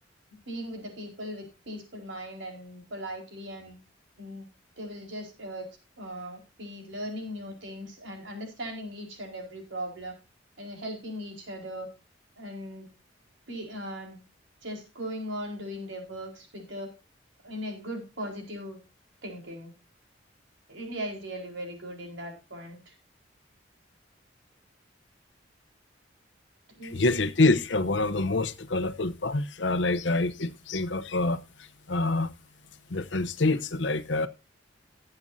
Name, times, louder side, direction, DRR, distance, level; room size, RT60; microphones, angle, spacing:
voice 1, 0.5-3.8 4.2-4.5 4.8-5.7 6.0-10.2 10.6-11.9 12.4-12.9 13.5-14.2 14.6-16.9 17.4-18.8 19.2-19.7 20.7-22.9 26.7-27.2, equal, 90° right, 4.6 m, -38 dB
voice 2, 26.9-31.4 31.9-32.3 32.9-34.3, left 2 dB, 70° left, 0.9 m, -26 dB
19.0 x 8.0 x 2.7 m
head